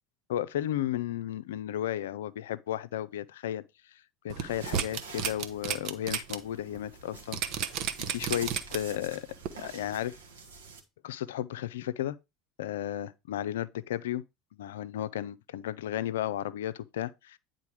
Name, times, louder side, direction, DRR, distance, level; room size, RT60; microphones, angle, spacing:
voice 1, 0.3-3.6 4.2-7.7 8.0-9.3 9.6-10.1 11.0-12.2 12.6-14.2 14.6-17.4, left 12 dB, 70° left, 0.4 m, -34 dB
sound 1, 4.3-6.4 6.7-6.9 7.3-9.0 9.4-9.5, right 9 dB, 50° right, 0.9 m, -32 dB
sound 2, 4.5-10.8, right 5 dB, 75° right, 1.7 m, -48 dB
9.5 x 3.9 x 4.7 m
figure-of-eight pair, 70°, 0 cm